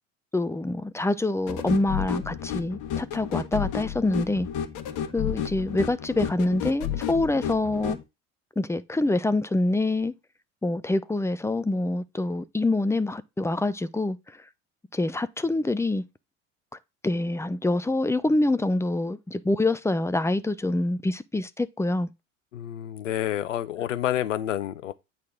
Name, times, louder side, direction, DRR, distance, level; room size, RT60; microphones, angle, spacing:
voice 1, 0.3-4.5 5.1-8.0 8.6-10.1 10.6-14.2 14.9-16.0 17.0-22.1, left 2 dB, 5° left, 0.7 m, -26 dB
sound 1, 1.5-8.0, left 9 dB, 55° left, 1.3 m, -32 dB
voice 2, 22.5-24.9, left 11 dB, 80° left, 0.8 m, -29 dB
8.5 x 4.1 x 5.0 m
figure-of-eight pair, 70°, 37 cm